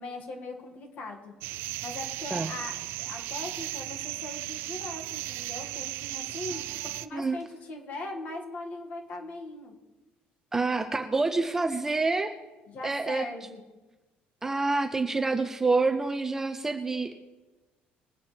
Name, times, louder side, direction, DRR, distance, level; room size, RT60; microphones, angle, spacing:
voice 1, 0.0-1.3 1.8-9.7 12.7-13.6, left 2 dB, 40° left, 2 dB, 2.1 m, -40 dB
sound 1, 1.4-7.1, right 15 dB, 80° right, 0.5 m, -36 dB
voice 2, 10.5-12.4 12.8-13.3 14.4-17.2, right 3 dB, 10° right, 7 dB, 0.5 m, -27 dB
21.5 x 8.4 x 3.5 m, 1.1 s
cardioid pair, 170°, 4 cm